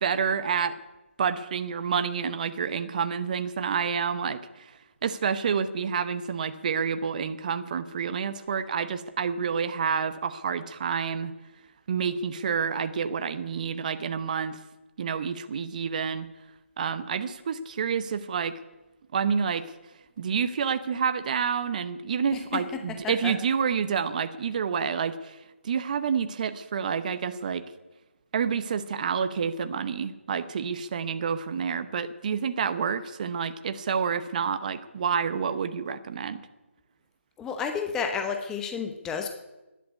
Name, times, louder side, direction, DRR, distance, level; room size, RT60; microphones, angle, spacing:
voice 1, 0.0-0.7 1.2-11.3 11.9-14.6 15.0-16.3 16.8-18.5 19.1-19.7 20.2-27.6 28.3-36.4, right 6 dB, 35° right, 11 dB, 0.9 m, -28 dB
voice 2, 22.9-23.3 37.4-39.3, left 6 dB, 10° left, 5 dB, 0.8 m, -31 dB
12.0 x 11.0 x 9.6 m, 1.0 s
figure-of-eight pair, 160°, 7 cm